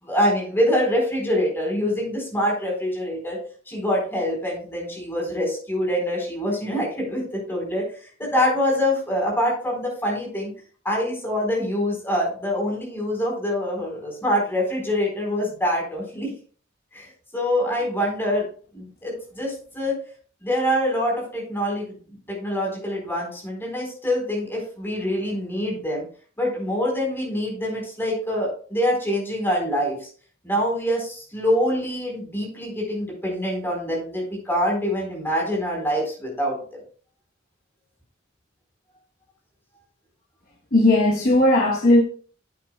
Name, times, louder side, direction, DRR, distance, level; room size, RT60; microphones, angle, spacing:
voice 1, 0.0-3.4 3.7-7.8 8.2-10.5 10.8-16.3 16.9-18.5 18.7-20.0 20.4-21.9 22.3-26.0 26.4-30.1 30.4-36.6, equal, 10° left, 4.2 m, -25 dB
voice 2, 40.7-42.0, left 1 dB, 45° left, 1.1 m, -17 dB
10.5 x 8.5 x 2.3 m
head